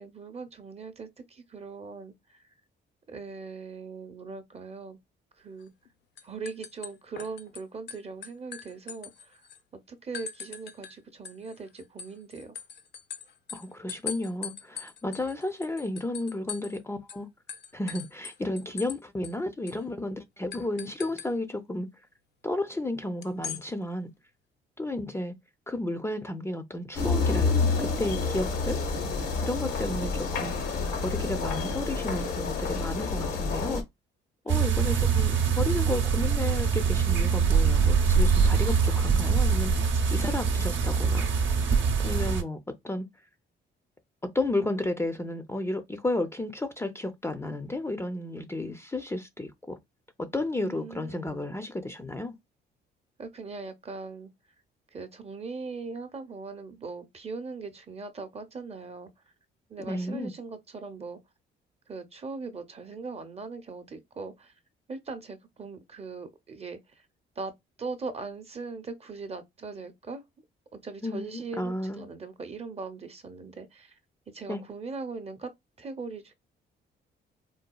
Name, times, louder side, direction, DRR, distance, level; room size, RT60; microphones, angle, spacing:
voice 1, 0.0-2.4 3.1-5.0 5.4-5.7 6.2-9.4 9.9-12.6 34.5-35.2 50.6-51.5 53.2-54.3 54.9-59.1 59.7-61.2 61.9-64.5 64.9-66.8 67.4-67.5 67.8-70.2 70.7-73.9 74.3-75.5 75.8-76.3, right 4 dB, 30° right, 0.7 m, -40 dB
sound 1, 5.6-5.9 6.2-7.6 7.9-9.6 10.1-10.9 11.2-16.8 17.1-17.2 17.5-19.0 19.2-19.3 19.7-19.8 20.5-21.3 23.2-23.6, left 8 dB, 60° left, 0.5 m, -41 dB
voice 2, 13.5-17.3 17.7-21.9 22.4-24.1 24.8-25.3 25.7-28.8 29.4-30.5 31.0-33.8 34.5-41.3 42.0-42.6 42.8-43.1 44.2-49.8 50.2-52.3 59.9-60.3 71.0-72.0 74.5-74.6, left 2 dB, 15° left, 0.4 m, -32 dB
sound 2, 26.9-33.8, left 4 dB, 85° left, 1.0 m, -28 dB
sound 3, 34.5-42.4, right 5 dB, 70° right, 0.8 m, -23 dB
3.9 x 2.3 x 2.2 m
cardioid pair, 90°, 20 cm